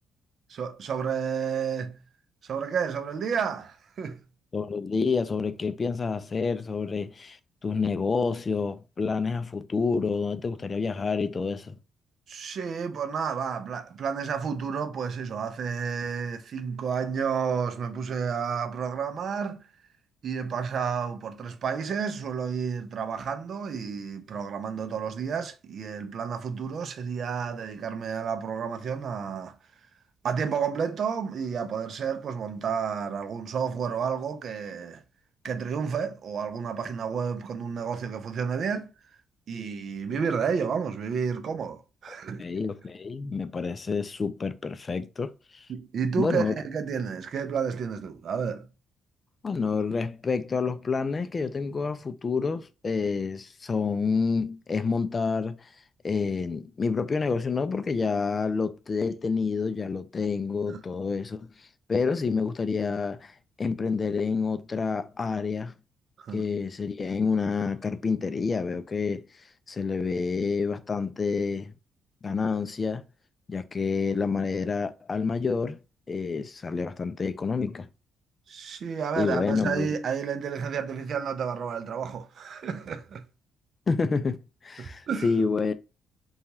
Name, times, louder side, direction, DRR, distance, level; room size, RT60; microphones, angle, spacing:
voice 1, 0.5-2.0 2.4-4.2 12.3-19.7 20.2-29.6 30.2-35.0 35.4-38.9 39.5-42.5 45.7-48.7 60.7-60.8 66.2-66.5 76.4-76.5 78.5-83.2 84.8-85.3, right 6 dB, 60° right, 0.5 m, -31 dB
voice 2, 4.5-11.7 42.1-45.7 46.2-46.6 49.4-55.7 56.0-65.7 66.3-69.3 69.7-71.7 72.2-73.0 73.5-75.8 76.1-77.9 79.2-79.9 83.9-85.8, left 4 dB, 35° left, 0.3 m, -28 dB
2.9 x 2.3 x 2.7 m
cardioid pair, 90°, 0 cm